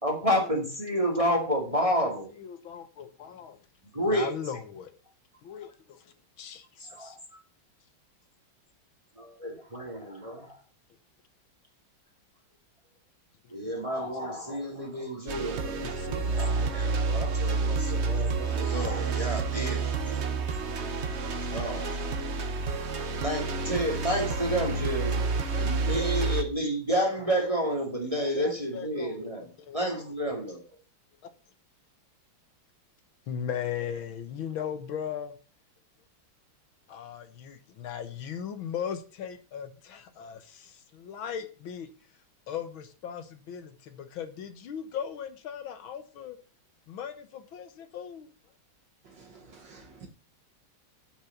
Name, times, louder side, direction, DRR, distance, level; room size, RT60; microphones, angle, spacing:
voice 1, 0.0-2.3 3.9-4.3 6.9-7.4 9.2-10.6 13.5-20.2 21.5-22.2 23.2-25.2 25.5-29.4 29.7-30.6, equal, 15° right, 2.3 m, -30 dB
voice 2, 2.3-3.7 4.0-4.9 5.4-7.2 14.0-14.5 15.8-17.1 17.7-18.3 20.2-20.4 23.0-23.1 25.1-26.5 28.3-29.8 31.2-31.3 33.3-35.4 36.9-41.9 42.5-46.4 46.9-48.3, left 8 dB, 75° left, 1.9 m, -39 dB
sound 1, 15.3-26.4, right 4 dB, 45° right, 1.0 m, -29 dB
voice 3, 49.0-50.1, right 5 dB, 65° right, 2.1 m, -51 dB
8.2 x 6.3 x 7.1 m
omnidirectional pair, 2.2 m